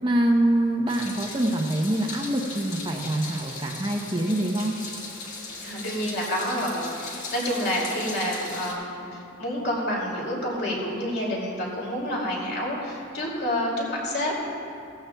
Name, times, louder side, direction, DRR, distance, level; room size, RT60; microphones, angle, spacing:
voice 1, 0.0-4.7, right 1 dB, 20° right, 1 dB, 0.7 m, -25 dB
Meow, 0.9-8.7, left 3 dB, 65° left, 2.0 m, -38 dB
voice 2, 5.6-14.4, equal, 50° left, -3 dB, 2.6 m, -28 dB
16.0 x 14.5 x 2.3 m, 2.6 s
head